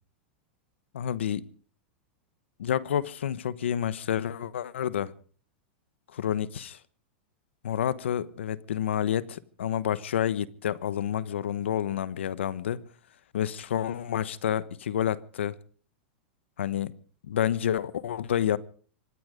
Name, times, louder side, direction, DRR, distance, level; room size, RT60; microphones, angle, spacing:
voice 1, 0.9-1.5 2.6-5.1 6.1-6.8 7.6-12.8 13.3-15.5 16.6-16.9 17.3-18.6, left 10 dB, 90° left, 1.1 m, -29 dB
25.5 x 10.0 x 5.1 m
hypercardioid pair, 130°, 6 cm